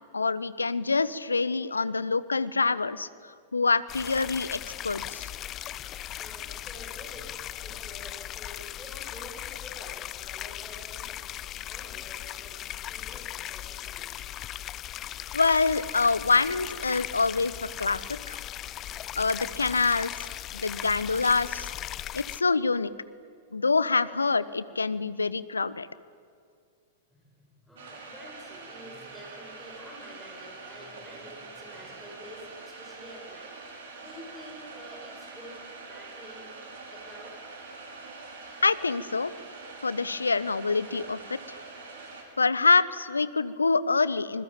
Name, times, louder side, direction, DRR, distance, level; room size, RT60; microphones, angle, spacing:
voice 1, 0.1-5.3 15.3-18.4 19.2-20.3 20.5-21.7 22.1-22.9 23.5-25.9 38.6-39.3 39.8-41.6 42.4-44.4, left 4 dB, 80° left, 17 dB, 0.9 m, -26 dB
sound 1, 3.9-22.4, left 13 dB, 30° left, 0.7 m, -38 dB
voice 2, 6.2-11.2 11.7-14.0 27.1-33.7 34.0-36.5 36.9-37.4, equal, ahead, -3 dB, 7.6 m, -48 dB
sound 2, 27.8-42.2, right 3 dB, 60° right, 5.6 m, -44 dB
26.0 x 21.0 x 9.0 m, 2.2 s
figure-of-eight pair, 95°, 0 cm